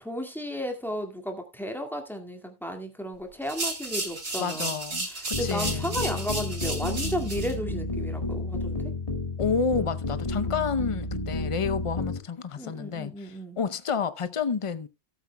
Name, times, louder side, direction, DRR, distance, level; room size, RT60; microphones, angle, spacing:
voice 1, 0.0-4.8 5.1-8.9 12.6-13.6, equal, ahead, 1.9 m, -34 dB
sound 1, 3.4-7.5, right 2 dB, 90° right, 3.8 m, -33 dB
voice 2, 4.4-6.0 9.4-14.9, left 5 dB, 40° left, 0.4 m, -30 dB
sound 2, 5.3-12.2, left 2 dB, 25° left, 2.1 m, -31 dB
18.0 x 8.2 x 2.2 m
omnidirectional pair, 1.4 m